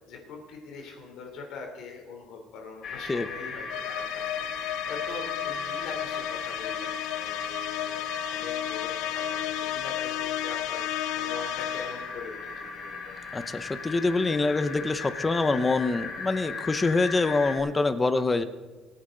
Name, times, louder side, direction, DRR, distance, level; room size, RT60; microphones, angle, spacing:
voice 1, 0.0-13.2 18.1-18.5, left 4 dB, 60° left, 2 dB, 3.3 m, -43 dB
sound 1, 2.8-17.6, left 3 dB, 40° left, 2.4 m, -38 dB
sound 2, 3.7-12.2, left 13 dB, 85° left, 0.5 m, -33 dB
voice 2, 13.3-18.4, left 3 dB, 15° left, 12 dB, 0.6 m, -25 dB
22.5 x 9.9 x 3.8 m, 1.3 s
cardioid pair, 170°, 0 cm